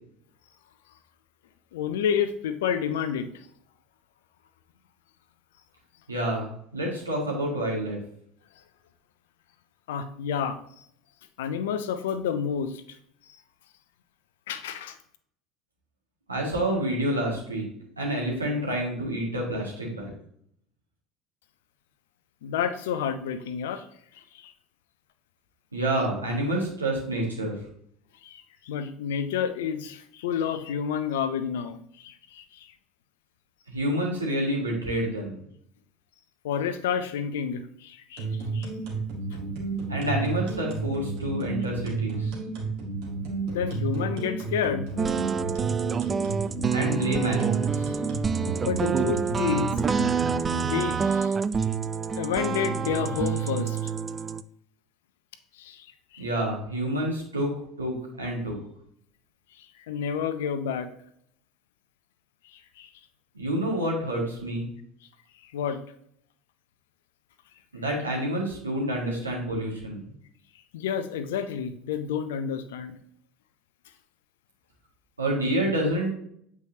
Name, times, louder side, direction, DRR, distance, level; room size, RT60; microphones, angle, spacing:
voice 1, 1.7-3.3 9.9-10.6 11.4-12.8 14.5-15.0 22.4-23.8 24.3-24.5 28.2-32.7 36.4-38.3 38.5-38.7 43.4-44.9 48.6-49.7 50.5-51.4 52.2-53.9 55.5-55.9 56.1-56.2 59.6-60.9 62.5-62.9 65.4-65.8 70.7-72.9, left 7 dB, 70° left, 10 dB, 0.6 m, -30 dB
voice 2, 6.1-8.0 16.3-17.6 18.0-20.1 25.7-27.6 33.7-35.4 39.9-42.3 46.7-48.0 56.2-58.6 63.3-64.7 67.7-70.0 75.2-76.1, right 1 dB, 90° right, -2 dB, 1.9 m, -28 dB
sound 1, 38.2-51.0, right 3 dB, 65° right, 1.8 m, -32 dB
sound 2, 45.0-54.4, right 6 dB, 30° right, 0.3 m, -27 dB
8.0 x 4.8 x 2.8 m, 0.67 s
figure-of-eight pair, 70°, 0 cm